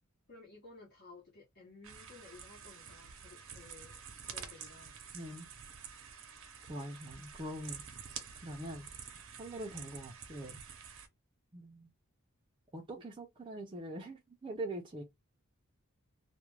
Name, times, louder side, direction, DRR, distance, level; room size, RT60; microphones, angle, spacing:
voice 1, 0.3-5.0, left 3 dB, 50° left, 0.8 m, -56 dB
sound 1, 1.8-11.1, right 7 dB, 65° right, 0.6 m, -49 dB
voice 2, 5.1-5.5 6.7-7.8 8.4-8.9 9.4-10.6 11.5-11.9 12.7-15.0, right 1 dB, 25° right, 0.4 m, -43 dB
2.3 x 2.1 x 3.1 m
head